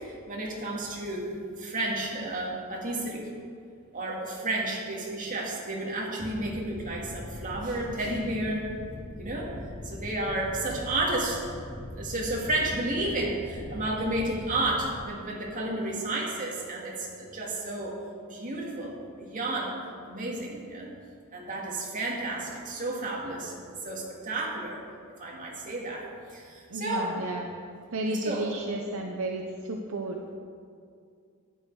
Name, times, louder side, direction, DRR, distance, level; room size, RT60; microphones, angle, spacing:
voice 1, 0.0-1.3 1.6-3.2 3.9-8.7 9.2-9.6 9.8-11.4 11.9-18.0 18.3-19.8 20.1-20.9 21.3-23.6 23.8-24.8 25.2-26.1 26.3-27.2 28.1-28.5, right 2 dB, 35° right, -2 dB, 2.1 m, -32 dB
sound 1, 6.2-15.1, left 1 dB, 25° left, 0.6 m, -41 dB
voice 2, 26.7-27.5 27.9-30.3, right 2 dB, 65° right, 2 dB, 0.7 m, -32 dB
12.0 x 8.8 x 4.7 m, 2.3 s
head